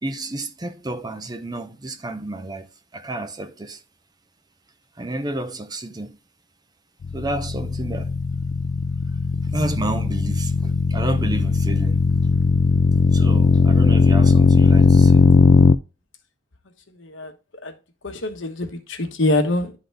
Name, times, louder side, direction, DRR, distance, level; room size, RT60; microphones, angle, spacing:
voice 1, 0.0-2.7 2.9-3.8 5.0-6.2 7.1-8.1 9.5-12.0 13.1-15.3, right 1 dB, 20° right, 0.6 m, -30 dB
sound 1, 7.0-15.7, left 4 dB, 60° left, 0.4 m, -17 dB
voice 2, 17.0-17.3 17.6-17.7 18.0-19.8, left 2 dB, 75° left, 1.2 m, -24 dB
11.5 x 3.9 x 3.3 m
head